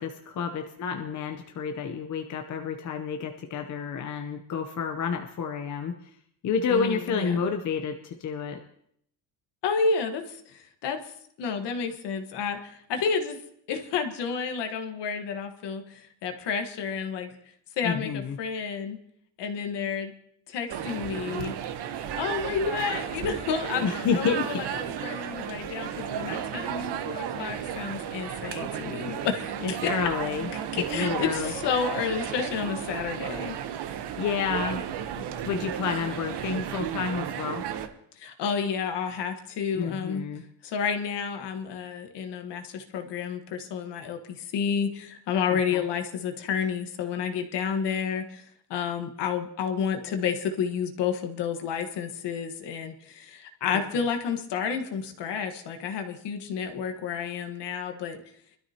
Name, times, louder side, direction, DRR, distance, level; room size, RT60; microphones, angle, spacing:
voice 1, 0.0-6.1 6.4-8.6 17.8-18.4 23.8-24.6 26.3-26.5 29.6-30.5 30.8-31.5 34.2-34.8 35.1-37.6 39.7-40.4 45.5-45.8 53.7-53.8, left 6 dB, 40° left, 3 dB, 0.8 m, -30 dB
voice 2, 6.7-7.4 9.6-11.0 11.4-13.4 13.7-17.3 17.8-19.0 19.4-20.1 20.5-21.6 22.1-23.8 24.1-29.8 30.7-33.6 38.2-40.2 40.6-48.4 48.7-58.2, left 6 dB, 60° left, 5 dB, 1.5 m, -30 dB
sound 1, 20.7-37.9, right 9 dB, 55° right, 1.1 m, -34 dB
24.0 x 13.0 x 2.9 m, 0.69 s
cardioid pair, 180°, 47 cm